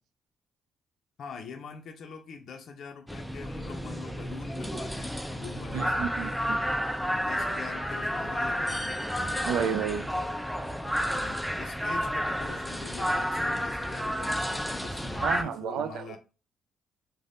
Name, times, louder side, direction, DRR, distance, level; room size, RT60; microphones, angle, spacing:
voice 1, 1.2-6.1 7.1-9.1 11.0-16.2, left 6 dB, 65° left, 0.4 m, -44 dB
sound 1, 3.1-15.4, equal, ahead, 0.4 m, -31 dB
voice 2, 5.7-6.8 9.4-10.1 15.2-16.2, right 7 dB, 85° right, 0.3 m, -31 dB
2.6 x 2.1 x 3.3 m
cardioid pair, 90°, 0 cm